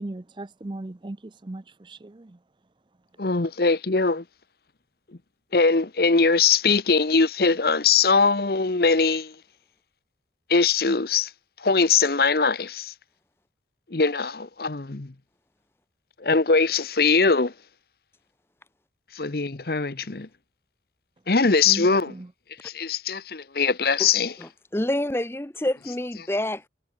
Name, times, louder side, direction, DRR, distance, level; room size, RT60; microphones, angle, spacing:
voice 1, 0.0-2.4 21.7-22.3, right 2 dB, 25° right, 0.5 m, -37 dB
voice 2, 3.2-4.2 5.5-9.3 10.5-11.3 11.6-12.9 13.9-15.1 16.2-17.5 19.1-20.3 21.3-22.1 22.6-24.3, left 4 dB, 55° left, 1.0 m, -21 dB
voice 3, 24.4-26.7, left 1 dB, 15° left, 0.7 m, -28 dB
head